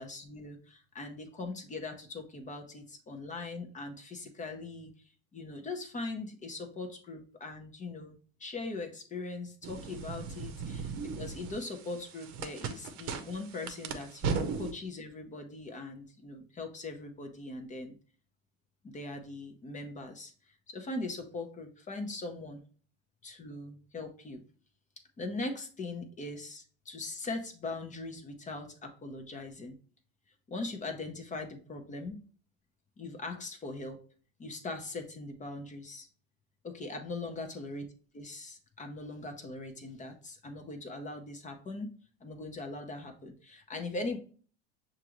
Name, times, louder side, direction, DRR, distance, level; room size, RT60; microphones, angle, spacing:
voice 1, 0.0-4.9 5.3-18.0 18.8-22.6 23.2-24.4 25.2-29.8 30.5-32.2 33.0-34.0 34.4-36.1 36.6-37.9 38.1-41.9 42.2-44.2, left 2 dB, 20° left, 5 dB, 0.7 m, -40 dB
sound 1, 9.6-14.7, right 5 dB, 55° right, 0.8 m, -37 dB
6.5 x 2.5 x 3.0 m, 0.41 s
hypercardioid pair, 95°, 34 cm